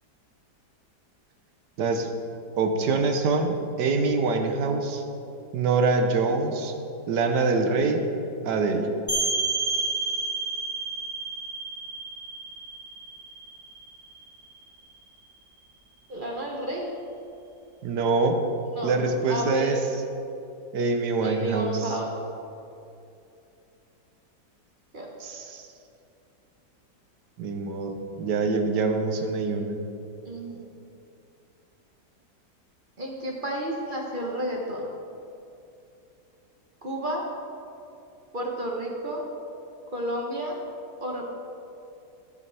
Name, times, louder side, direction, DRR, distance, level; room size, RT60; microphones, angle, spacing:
voice 1, 1.8-2.1 2.6-5.0 5.5-6.7 7.1-8.0 8.4-8.9 17.8-18.4 18.8-19.8 20.7-21.7 25.2-25.6 27.4-29.7, right 3 dB, 75° right, 5 dB, 1.5 m, -24 dB
sound 1, 9.1-14.6, right 3 dB, 10° left, 2.6 m, -30 dB
voice 2, 16.1-16.9 18.7-18.9 19.2-19.8 21.2-22.1 24.9-25.1 30.2-30.6 33.0-34.9 36.8-37.2 38.3-39.2 39.9-40.6 41.0-41.4, right 1 dB, 35° right, -1 dB, 1.1 m, -31 dB
16.0 x 6.9 x 3.4 m, 2.7 s
omnidirectional pair, 1.9 m